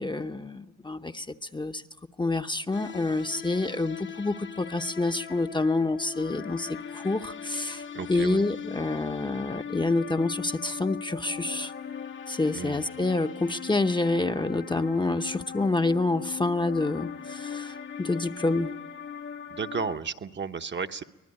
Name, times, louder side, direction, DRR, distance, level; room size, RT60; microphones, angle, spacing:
voice 1, 0.0-1.8 2.2-11.7 12.3-18.7, left 2 dB, 15° left, 7 dB, 0.8 m, -28 dB
sound 1, 2.7-20.0, left 7 dB, 40° left, 1.0 m, -39 dB
voice 2, 7.9-8.4 12.5-12.8 19.5-21.0, right 5 dB, 40° right, 7 dB, 1.0 m, -33 dB
24.5 x 20.0 x 9.7 m, 1.1 s
cardioid pair, 90°, 30 cm